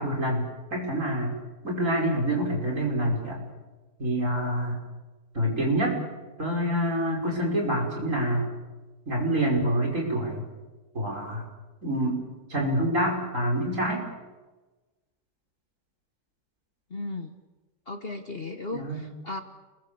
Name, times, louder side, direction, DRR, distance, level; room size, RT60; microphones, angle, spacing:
voice 1, 0.0-1.4 1.6-3.4 4.0-4.8 5.3-6.0 6.4-8.5 9.1-10.5 10.9-11.4 11.8-12.2 12.5-14.0 18.7-19.0, right 1 dB, 45° right, -1 dB, 6.1 m, -26 dB
voice 2, 16.9-17.4 17.9-19.4, left 2 dB, 40° left, 6 dB, 1.2 m, -36 dB
29.0 x 22.5 x 7.0 m, 1.2 s
omnidirectional pair, 1.8 m